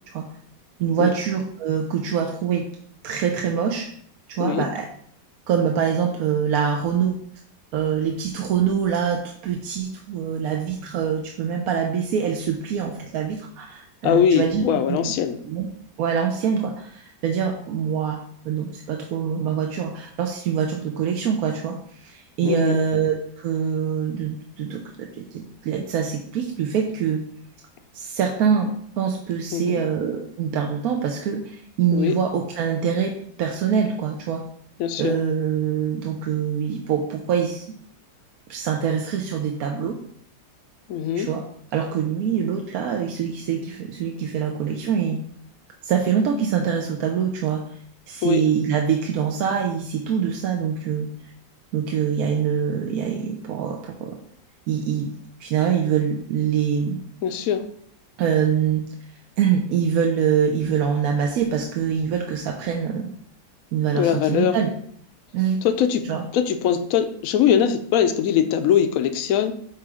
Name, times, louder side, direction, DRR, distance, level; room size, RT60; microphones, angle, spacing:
voice 1, 0.8-2.7 3.0-3.9 4.3-4.9 5.5-7.2 7.7-14.6 14.9-15.1 15.4-15.7 16.0-27.2 27.9-34.4 35.0-37.7 38.5-40.0 41.1-41.5 41.7-45.2 45.8-47.8 48.1-51.3 51.7-54.2 54.7-55.1 55.4-57.0 58.2-58.9 59.4-63.1 63.7-64.7 65.3-65.6 66.1-66.2, right 7 dB, 65° right, 2 dB, 1.0 m, -24 dB
voice 2, 14.0-15.4 22.4-22.8 29.5-29.8 31.9-32.2 34.8-35.1 40.9-41.3 48.2-48.4 57.2-57.6 63.9-64.6 65.6-66.1 66.3-69.5, left 8 dB, 65° left, 9 dB, 0.9 m, -21 dB
8.4 x 3.1 x 4.9 m, 0.63 s
omnidirectional pair, 1.8 m